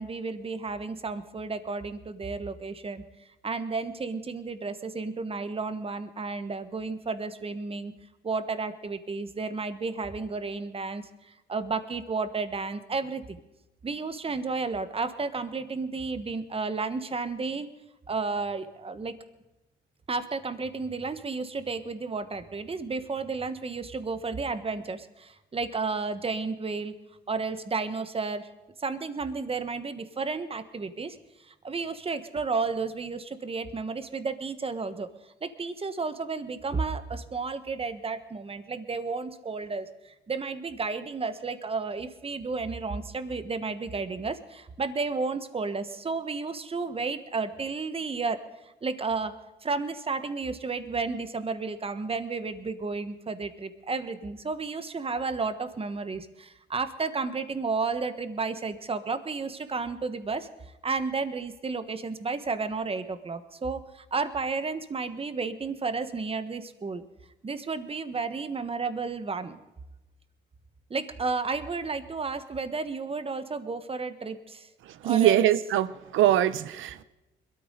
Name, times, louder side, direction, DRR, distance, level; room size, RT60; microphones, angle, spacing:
voice 1, 0.0-3.0 3.4-7.9 8.2-11.0 11.5-13.4 13.8-17.7 18.1-19.1 20.1-26.9 27.3-28.5 28.8-31.2 31.5-35.1 35.4-48.4 48.8-49.3 49.6-60.5 60.8-67.0 67.4-69.6 70.9-74.7 75.0-75.4, right 4 dB, 30° right, 1.3 m, -32 dB
voice 2, 75.0-77.0, right 12 dB, 80° right, 0.7 m, -23 dB
22.0 x 13.5 x 3.9 m
cardioid pair, 90°, 20 cm